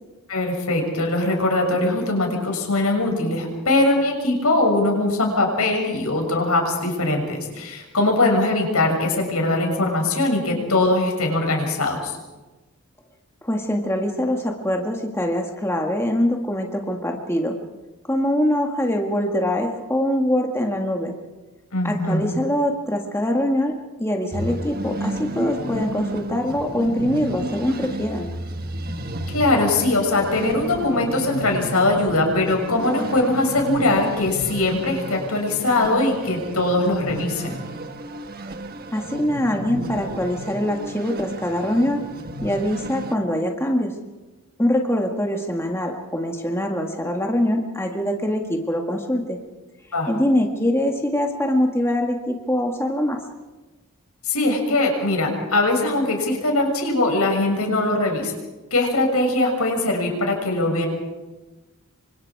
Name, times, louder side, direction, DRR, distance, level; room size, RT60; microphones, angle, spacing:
voice 1, 0.3-12.2 21.7-22.3 29.3-37.6 49.9-50.1 54.2-58.3 58.7-60.9, left 2 dB, 80° left, 2 dB, 6.8 m, -21 dB
voice 2, 13.4-17.6 18.1-21.1 21.8-28.3 38.9-42.0 42.4-43.9 44.6-49.4 50.1-53.2, left 1 dB, 10° left, 2 dB, 1.8 m, -23 dB
sound 1, 24.3-43.2, right 1 dB, 45° right, 1.4 m, -32 dB
28.0 x 25.0 x 4.8 m, 1.2 s
head